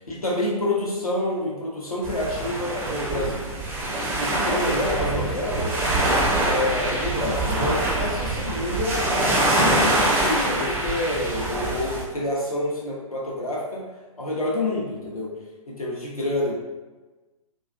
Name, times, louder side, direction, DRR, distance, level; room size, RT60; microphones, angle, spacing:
voice 1, 0.1-3.5 4.0-5.9 6.4-13.8 14.2-15.3 15.7-16.5, left 1 dB, 85° left, -4 dB, 0.7 m, -28 dB
sound 1, 2.0-12.0, right 2 dB, 15° right, 0.4 m, -24 dB
2.4 x 2.3 x 2.4 m, 1.2 s
figure-of-eight pair, 115°, 18 cm